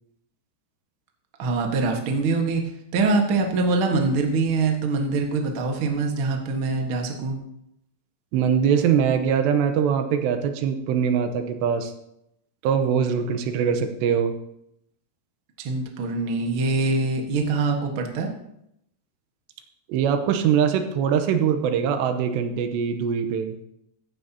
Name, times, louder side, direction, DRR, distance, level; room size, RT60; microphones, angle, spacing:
voice 1, 1.4-2.6 2.9-7.4 15.6-18.3, right 3 dB, 65° right, 2 dB, 1.3 m, -24 dB
voice 2, 8.3-11.9 12.6-14.3 19.9-23.6, right 7 dB, 90° right, 7 dB, 3.1 m, -22 dB
15.0 x 11.0 x 2.9 m, 0.78 s
omnidirectional pair, 4.9 m